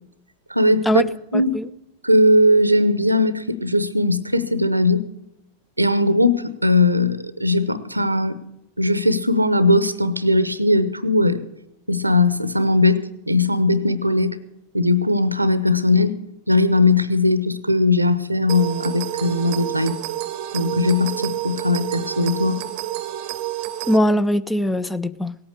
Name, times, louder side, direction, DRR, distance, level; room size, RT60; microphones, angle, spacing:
voice 1, 0.5-1.0 1.3-1.5 2.0-5.0 5.8-8.3 8.8-11.4 11.9-14.4 14.7-16.2 16.5-20.0 20.5-22.6, left 2 dB, 85° right, 17 dB, 0.7 m, -19 dB
voice 2, 1.3-1.7 23.9-25.4, equal, 5° left, 16 dB, 0.4 m, -20 dB
sound 1, 18.5-24.0, right 13 dB, 45° right, 0.7 m, -29 dB
17.5 x 8.6 x 6.6 m, 0.85 s
figure-of-eight pair, 90°, 0 cm